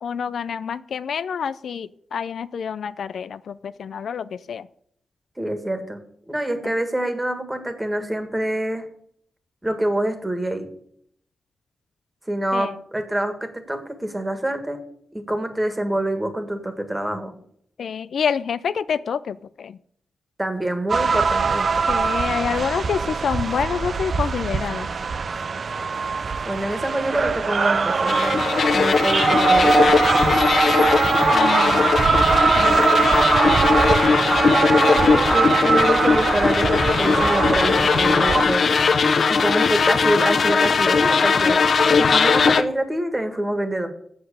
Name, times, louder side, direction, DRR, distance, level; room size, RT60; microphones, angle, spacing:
voice 1, 0.0-4.7 6.6-6.7 12.5-12.8 17.8-19.8 21.9-24.9 31.3-31.9 32.6-33.1, left 7 dB, 75° left, 14 dB, 0.4 m, -27 dB
voice 2, 5.4-6.0 6.3-8.8 9.6-10.7 12.3-14.8 15.1-17.3 20.4-21.8 26.4-29.9 32.5-32.7 34.4-38.7 39.3-41.6 41.9-43.9, right 1 dB, 10° right, 7 dB, 1.8 m, -26 dB
sound 1, 20.9-38.5, right 5 dB, 45° right, 0.5 m, -21 dB
sound 2, 28.1-42.6, left 5 dB, 55° left, 0.8 m, -19 dB
7.9 x 7.5 x 8.4 m, 0.65 s
wide cardioid pair, 140°, 0 cm